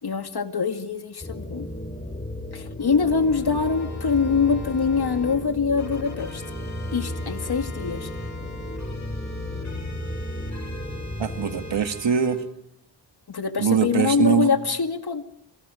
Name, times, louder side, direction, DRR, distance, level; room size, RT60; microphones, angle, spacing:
voice 1, 0.0-1.7 2.5-6.4 6.9-8.1 13.3-15.2, left 5 dB, 60° left, 7 dB, 2.2 m, -24 dB
sound 1, 1.2-11.9, left 1 dB, 20° left, 4.3 m, -34 dB
sound 2, 2.8-5.4 5.8-12.4, left 3 dB, 40° left, 7.7 m, -45 dB
voice 2, 11.2-12.4 13.6-14.5, right 7 dB, 85° right, 8 dB, 2.0 m, -22 dB
28.5 x 26.0 x 5.0 m, 0.73 s
cardioid pair, 70°, 43 cm